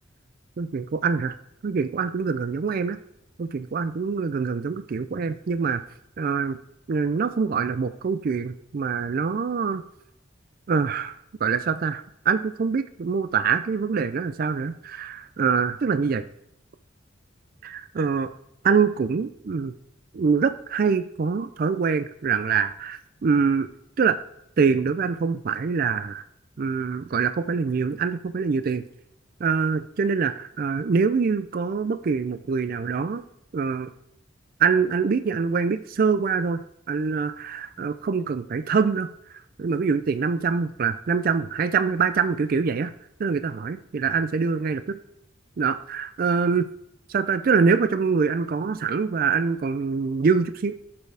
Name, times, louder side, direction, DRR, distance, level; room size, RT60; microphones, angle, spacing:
voice 1, 0.6-1.4 1.6-3.0 3.4-5.8 6.2-6.6 6.9-9.8 10.7-11.2 11.4-16.2 17.6-18.3 18.6-19.7 20.1-23.7 24.0-24.2 24.6-26.2 26.6-28.8 29.4-33.2 33.5-33.9 34.6-36.6 36.9-39.1 39.6-42.9 43.2-45.0 45.6-46.7 47.1-50.7, right 5 dB, 50° right, 11 dB, 0.4 m, -24 dB
13.5 x 6.8 x 3.4 m, 0.78 s
head